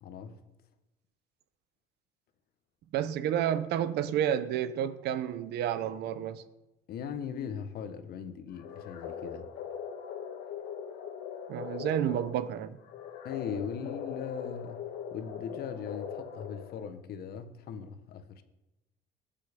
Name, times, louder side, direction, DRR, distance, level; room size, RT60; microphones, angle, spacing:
voice 1, 0.0-0.4 6.9-9.5 13.2-18.4, left 7 dB, 65° left, 1.4 m, -39 dB
voice 2, 2.9-6.4 11.5-12.8, right 10 dB, 80° right, 1.0 m, -30 dB
sound 1, 8.5-17.0, left 7 dB, 85° left, 1.8 m, -41 dB
20.5 x 7.5 x 5.3 m
cardioid pair, 110°, 17 cm